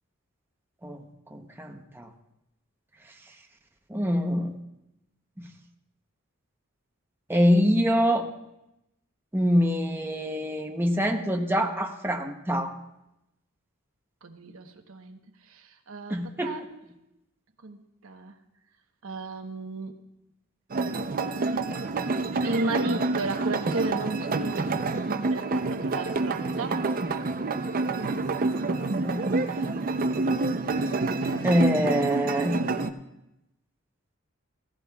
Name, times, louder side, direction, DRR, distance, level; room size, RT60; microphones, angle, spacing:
voice 1, 1.3-2.1 3.9-4.5 7.3-8.3 9.3-12.7 16.1-16.5 28.5-29.2 31.4-32.6, equal, 10° right, 3 dB, 0.8 m, -25 dB
voice 2, 14.2-16.8 17.6-18.4 19.0-19.9 22.4-26.8 29.6-29.7, right 3 dB, 80° right, 5 dB, 1.0 m, -34 dB
sound 1, 20.7-32.9, right 3 dB, 45° right, 0.5 m, -28 dB
16.0 x 15.0 x 2.3 m, 0.88 s
head